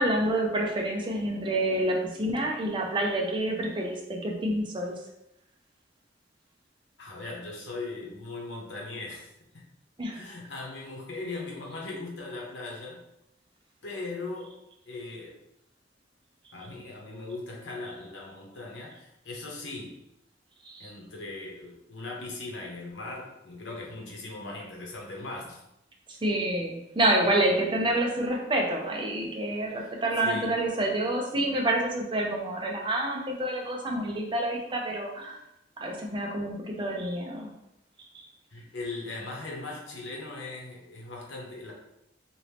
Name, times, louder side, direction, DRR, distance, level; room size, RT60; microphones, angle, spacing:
voice 1, 0.0-4.9 10.0-10.2 20.6-20.9 26.1-35.4 35.8-37.5 38.1-38.2, right 1 dB, 25° right, 1 dB, 0.5 m, -28 dB
voice 2, 7.0-9.6 10.1-13.0 13.8-14.5 14.9-15.4 16.5-19.9 20.8-25.6 27.2-27.6 29.7-29.9 30.2-30.6 38.5-41.7, left 3 dB, 85° left, -2 dB, 0.9 m, -39 dB
3.0 x 2.6 x 3.3 m, 0.85 s
head